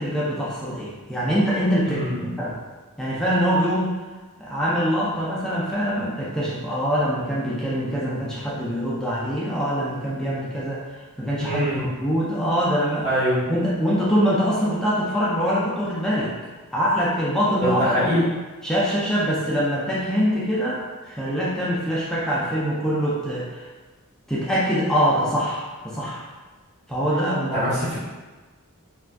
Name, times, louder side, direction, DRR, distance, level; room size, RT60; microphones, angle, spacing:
voice 1, 0.0-2.6 3.0-4.0 4.4-10.8 11.2-13.1 13.5-16.3 16.7-18.0 18.6-23.7 24.3-26.3 26.9-27.6, equal, 5° left, -7 dB, 0.4 m, -24 dB
voice 2, 1.9-2.2 11.4-11.8 13.0-13.4 17.6-18.3 27.5-28.0, equal, 30° right, -11 dB, 1.3 m, -23 dB
3.4 x 2.3 x 2.5 m, 1.3 s
head